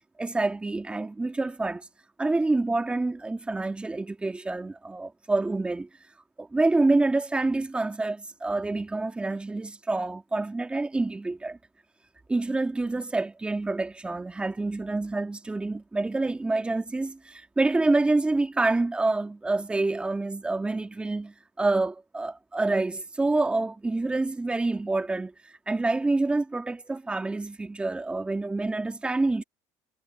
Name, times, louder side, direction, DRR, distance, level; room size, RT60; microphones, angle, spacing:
voice 1, 0.2-1.9 2.2-5.9 6.4-11.6 12.3-29.4, right 2 dB, 15° right, 2.0 m, -27 dB
supercardioid pair, 105°, 8 cm